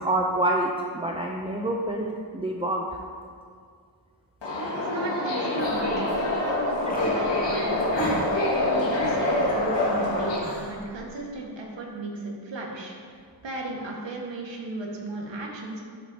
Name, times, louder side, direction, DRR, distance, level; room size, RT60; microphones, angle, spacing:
voice 1, 0.0-2.9, right 1 dB, 15° right, 0 dB, 0.5 m, -27 dB
Subway metro underground, 4.4-10.4, left 1 dB, 85° left, 1.9 m, -25 dB
voice 2, 4.8-8.3 8.7-12.9 13.4-15.8, right 2 dB, 85° right, -2 dB, 1.6 m, -35 dB
sound 1, 5.6-11.3, left 1 dB, 20° left, 1.4 m, -38 dB
11.5 x 7.5 x 2.8 m, 2.1 s
wide cardioid pair, 140°, 43 cm